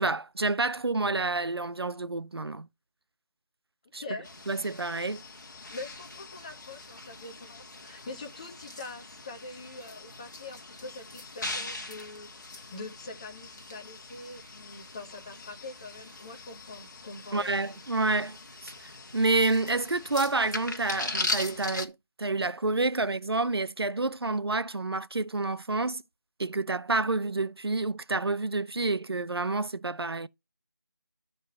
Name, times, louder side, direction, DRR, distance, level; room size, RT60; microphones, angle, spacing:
voice 1, 0.0-2.7 3.9-4.0 4.5-5.2 17.3-18.4 18.6-18.7 19.1-26.0 26.4-30.3, right 3 dB, 80° right, 0.6 m, -28 dB
voice 2, 4.0-4.3 5.7-17.6, left 3 dB, 15° left, 1.3 m, -44 dB
sound 1, 4.2-21.9, left 2 dB, 50° left, 1.5 m, -40 dB
11.5 x 4.4 x 5.7 m
figure-of-eight pair, 170°, 13 cm